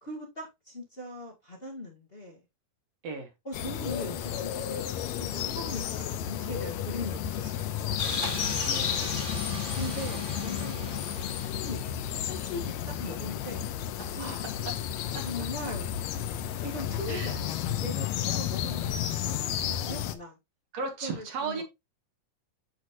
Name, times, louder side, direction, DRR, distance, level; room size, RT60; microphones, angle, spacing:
voice 1, 0.0-2.4 3.4-8.0 9.7-11.8 12.2-13.6 14.1-14.4 15.1-15.9 16.6-17.4 17.8-20.4 21.0-21.6, left 1 dB, 30° left, 1.1 m, -40 dB
sound 1, 3.5-20.1, left 10 dB, 75° left, 1.6 m, -32 dB
sound 2, 8.0-12.0, right 1 dB, 20° right, 1.5 m, -39 dB
voice 2, 8.6-9.1 14.0-14.1 15.1-15.2 17.1-17.4 20.7-21.6, right 4 dB, 60° right, 2.1 m, -35 dB
8.0 x 6.1 x 2.6 m
omnidirectional pair, 3.9 m